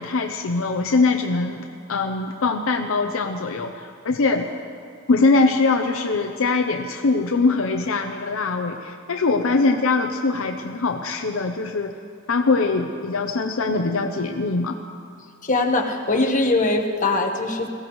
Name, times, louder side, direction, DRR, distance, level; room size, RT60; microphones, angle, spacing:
voice 1, 0.0-4.5 5.1-11.9 12.3-14.8, left 3 dB, 70° left, 4 dB, 0.7 m, -22 dB
voice 2, 15.4-17.7, left 2 dB, 40° left, 2 dB, 1.2 m, -21 dB
21.5 x 16.0 x 3.1 m, 2.3 s
head